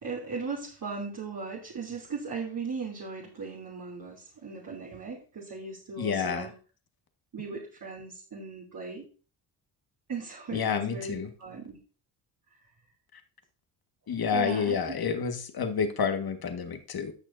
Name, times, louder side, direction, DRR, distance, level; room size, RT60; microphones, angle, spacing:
voice 1, 0.0-6.5 7.3-9.0 10.1-11.8 14.3-15.0, right 4 dB, 45° right, -5 dB, 2.8 m, -38 dB
voice 2, 6.0-6.5 10.5-11.3 14.1-17.1, left 6 dB, 50° left, 7 dB, 1.6 m, -29 dB
13.5 x 6.3 x 2.6 m, 0.37 s
supercardioid pair, 60°, 47 cm